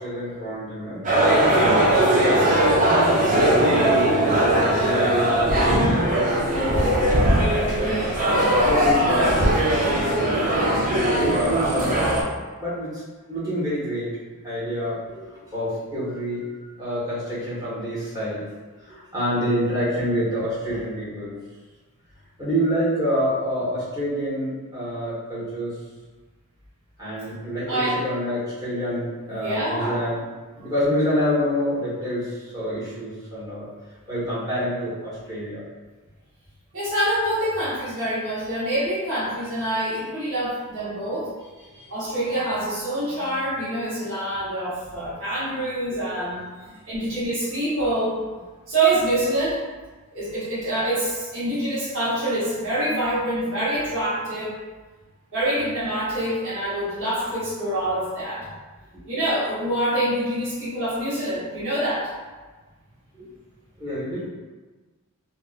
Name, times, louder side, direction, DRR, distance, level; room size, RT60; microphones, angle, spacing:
voice 1, 0.0-2.5 3.2-6.9 7.2-8.1 8.6-9.4 10.0-10.4 10.9-12.1 12.6-14.1 14.4-16.4 16.8-18.4 18.8-21.3 22.4-25.8 27.0-30.2 30.6-33.7 34.1-35.6 41.7-41.9 43.2-43.4 46.7-46.8 58.9-59.1 63.1-63.3 63.8-64.3, equal, 15° right, -10 dB, 0.9 m, -27 dB
sound 1, 1.0-12.2, right 1 dB, 35° right, 0.4 m, -19 dB
voice 2, 2.4-2.8 6.1-6.2 6.5-6.7 7.2-7.3 10.1-10.2 27.7-28.0 29.3-30.0 36.7-41.3 41.9-46.4 46.9-48.2 48.7-49.6 50.1-54.6 55.3-58.5 59.1-62.1, right 1 dB, 60° right, -11 dB, 0.9 m, -26 dB
2.6 x 2.1 x 2.3 m, 1.3 s
head